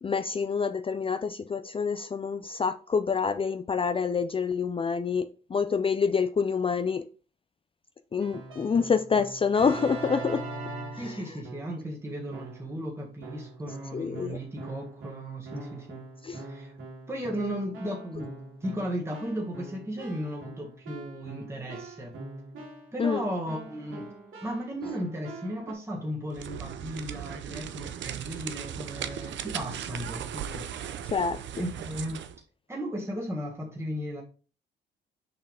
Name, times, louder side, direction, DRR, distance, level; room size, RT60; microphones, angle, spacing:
voice 1, 0.0-7.1 8.1-10.4 10.9-11.2 13.9-14.4 16.2-16.4 23.0-23.2 31.1-31.4, left 5 dB, 25° left, 0.5 m, -27 dB
Keyboard (musical), 8.2-11.9 12.3-12.8 13.2-25.7, right 2 dB, 85° right, 2.9 m, -43 dB
voice 2, 11.0-16.0 16.4-16.7 17.1-18.4 18.6-22.1 22.9-24.1 24.4-31.0 31.6-32.2 32.7-34.2, equal, 15° right, 1.9 m, -35 dB
sound 1, 26.3-32.4, right 9 dB, 70° right, 0.7 m, -37 dB
6.8 x 5.6 x 3.4 m
cardioid pair, 90°, 20 cm